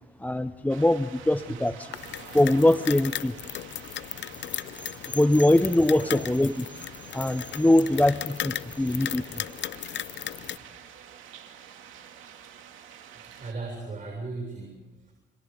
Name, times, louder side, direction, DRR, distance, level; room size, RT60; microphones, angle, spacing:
voice 1, 0.2-1.9 2.3-3.3 5.1-6.7 7.1-9.4, left 1 dB, 10° left, 11 dB, 0.7 m, -22 dB
sound 1, 0.7-13.5, right 9 dB, 80° right, 2.6 m, -48 dB
voice 2, 1.3-1.7 2.0-2.1 3.7-3.9 5.9-6.2 10.4-10.8 11.8-11.9 12.2-12.4 13.2-15.1, right 3 dB, 40° right, 0 dB, 6.9 m, -39 dB
sound 2, 1.9-10.6, left 12 dB, 65° left, 0.6 m, -36 dB
29.5 x 29.0 x 3.9 m, 1.2 s
cardioid pair, 90°, 20 cm